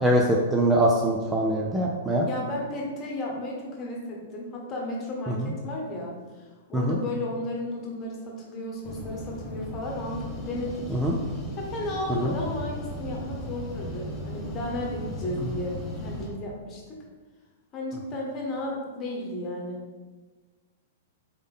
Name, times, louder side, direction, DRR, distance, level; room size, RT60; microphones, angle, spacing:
voice 1, 0.0-2.3 5.4-5.5 6.7-7.0 10.9-11.2 12.2-12.3, right 1 dB, 10° right, -2 dB, 0.5 m, -23 dB
voice 2, 2.2-11.0 11.6-17.0 17.7-19.8, left 1 dB, 30° left, -1 dB, 1.2 m, -34 dB
sound 1, 8.8-16.3, equal, 15° left, 1.2 m, -36 dB
4.0 x 3.5 x 3.7 m, 1.3 s
hypercardioid pair, 125°, 0 cm